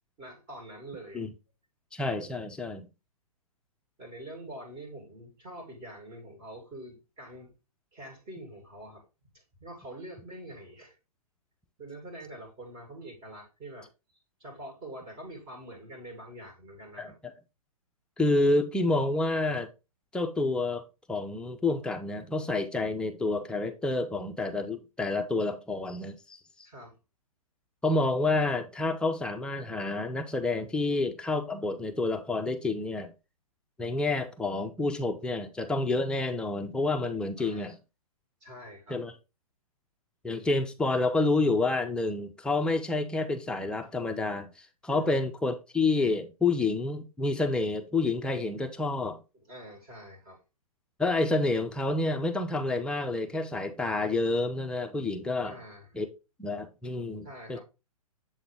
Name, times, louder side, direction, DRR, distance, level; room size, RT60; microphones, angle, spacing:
voice 1, 0.2-1.2 4.0-7.5 7.9-9.0 9.6-11.0 11.8-13.9 14.4-17.2 26.6-27.0 37.4-37.7 38.4-39.0 44.9-45.1 49.3-50.4 55.4-55.9 57.2-57.6, right 1 dB, 30° right, 2.7 m, -45 dB
voice 2, 1.9-2.9 17.0-17.3 18.2-19.7 20.1-20.8 21.1-26.4 27.8-33.1 33.8-37.8 38.9-39.1 40.2-49.2 51.0-55.5 55.9-56.1 56.4-57.6, left 2 dB, 5° left, 0.4 m, -29 dB
7.3 x 3.8 x 3.4 m
hypercardioid pair, 130°, 19 cm